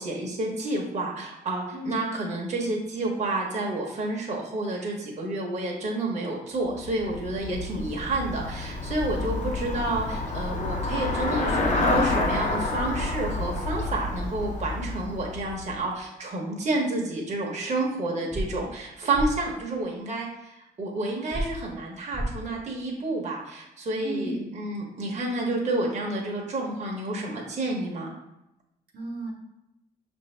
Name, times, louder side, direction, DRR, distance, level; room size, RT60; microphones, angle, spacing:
voice 1, 0.0-28.1, right 2 dB, 40° right, -1 dB, 0.9 m, -30 dB
Traffic noise roadway noise / Bicycle, 6.7-15.9, left 2 dB, 40° left, 0.8 m, -29 dB
voice 2, 9.2-9.6 24.0-24.4 28.9-29.3, right 1 dB, 65° right, -2 dB, 1.0 m, -34 dB
sound 1, 18.3-18.5 19.1-19.3 21.3-21.5 22.1-22.3, right 1 dB, 15° right, 0.7 m, -28 dB
5.3 x 2.7 x 3.2 m, 0.88 s
cardioid pair, 80°, 18 cm